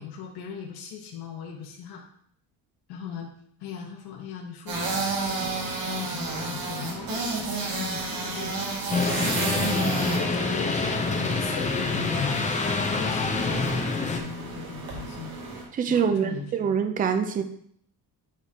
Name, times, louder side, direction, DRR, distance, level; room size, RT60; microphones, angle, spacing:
voice 1, 0.0-2.0 2.9-3.3 3.6-5.5 5.9-7.3 7.7-8.6 10.0-12.5 12.9-15.4 15.9-16.7, left 7 dB, 75° left, -1 dB, 1.3 m, -38 dB
sound 1, 4.7-15.6, right 3 dB, 60° right, 2.1 m, -32 dB
sound 2, 8.9-14.2, left 3 dB, 20° left, 0.7 m, -26 dB
voice 2, 15.7-17.4, right 7 dB, 20° right, 8 dB, 0.4 m, -25 dB
9.9 x 4.8 x 2.9 m, 0.65 s
cardioid pair, 160°, 40 cm